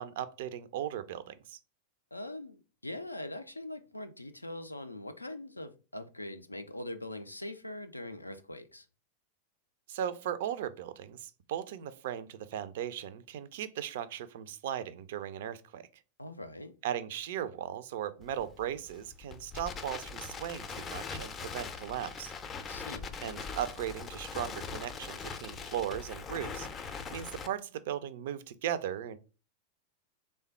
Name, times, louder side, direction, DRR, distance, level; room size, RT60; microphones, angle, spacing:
voice 1, 0.0-1.6 9.9-15.9 16.8-22.3 23.2-29.2, right 10 dB, 55° right, 0.3 m, -37 dB
voice 2, 2.1-8.9 16.2-16.7 22.7-23.1, left 1 dB, 85° left, 0.3 m, -42 dB
Crackle, 18.2-27.5, left 5 dB, 25° left, 0.4 m, -41 dB
3.3 x 2.2 x 4.2 m
figure-of-eight pair, 90°, 0 cm